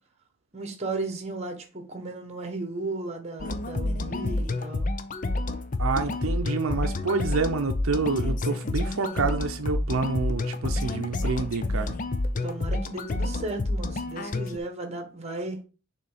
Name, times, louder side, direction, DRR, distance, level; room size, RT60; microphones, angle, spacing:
voice 1, 0.5-4.9 12.4-15.6, right 2 dB, 30° right, 1.3 m, -35 dB
sound 1, 3.4-14.6, left 2 dB, 40° left, 0.6 m, -29 dB
voice 2, 5.8-11.9, right 4 dB, 85° right, 0.6 m, -28 dB
6.8 x 3.2 x 5.0 m
head